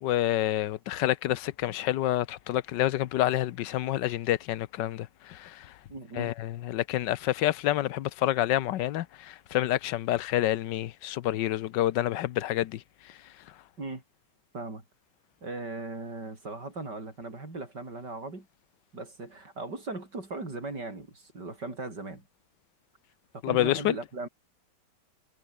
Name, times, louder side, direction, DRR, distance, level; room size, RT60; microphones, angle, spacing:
voice 1, 0.0-5.7 6.2-12.8 23.4-23.9, left 13 dB, 90° left, 1.4 m, -28 dB
voice 2, 5.9-6.3 13.8-14.0 14.5-14.8 15.4-18.5 18.9-22.2 23.3-24.3, right 2 dB, 75° right, 6.3 m, -38 dB
omnidirectional pair, 1.8 m